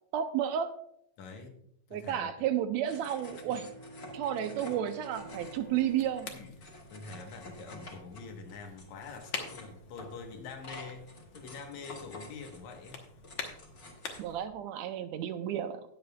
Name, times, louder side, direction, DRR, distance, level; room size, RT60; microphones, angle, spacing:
voice 1, 0.1-0.8 1.9-3.7 4.1-6.3 14.2-15.8, right 10 dB, 80° right, 9 dB, 1.9 m, -32 dB
voice 2, 1.2-2.5 6.3-6.6 6.9-13.0, left 4 dB, 75° left, 4 dB, 2.6 m, -46 dB
sound 1, 2.8-14.2, left 2 dB, 35° left, 2.0 m, -50 dB
Bowed string instrument, 2.8-7.6, right 2 dB, 15° left, 2.4 m, -50 dB
sound 2, 5.1-14.4, left 5 dB, 55° left, 1.5 m, -47 dB
18.0 x 7.8 x 2.3 m, 0.71 s
omnidirectional pair, 3.4 m